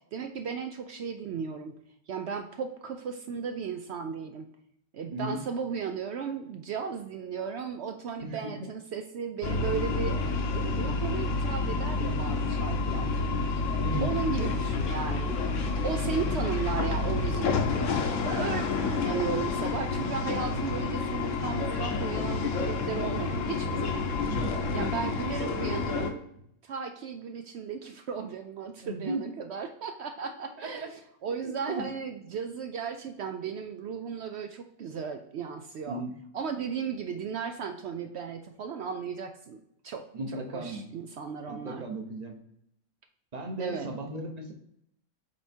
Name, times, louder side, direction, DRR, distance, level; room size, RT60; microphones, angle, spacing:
voice 1, 0.1-1.8 2.1-4.5 4.9-10.2 10.5-13.2 14.0-15.4 15.8-17.9 18.2-18.6 19.0-24.1 24.7-26.2 26.6-36.0 36.3-41.9 43.6-43.9, right 6 dB, 65° right, 7 dB, 0.7 m, -35 dB
voice 2, 8.2-8.7 13.8-14.5 24.3-24.5 28.8-29.2 30.4-30.9 31.4-31.8 35.9-36.1 40.1-40.8 41.5-42.4 43.3-44.5, right 1 dB, 35° right, 4 dB, 0.9 m, -36 dB
sound 1, 9.4-26.1, left 3 dB, 70° left, 1.1 m, -29 dB
7.9 x 3.5 x 4.3 m, 0.75 s
omnidirectional pair, 1.4 m